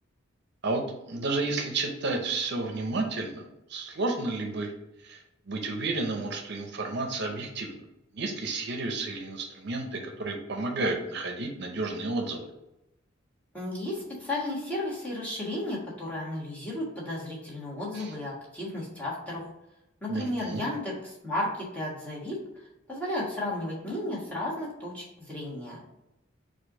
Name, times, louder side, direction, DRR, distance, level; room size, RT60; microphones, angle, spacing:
voice 1, 0.6-4.7 5.0-7.8 8.1-12.5 17.9-18.1 20.1-20.6, right 3 dB, 60° right, 3 dB, 0.6 m, -31 dB
voice 2, 13.5-19.4 20.0-22.4 22.9-25.8, left 1 dB, 10° left, -6 dB, 1.4 m, -33 dB
4.4 x 2.5 x 4.7 m, 0.90 s
head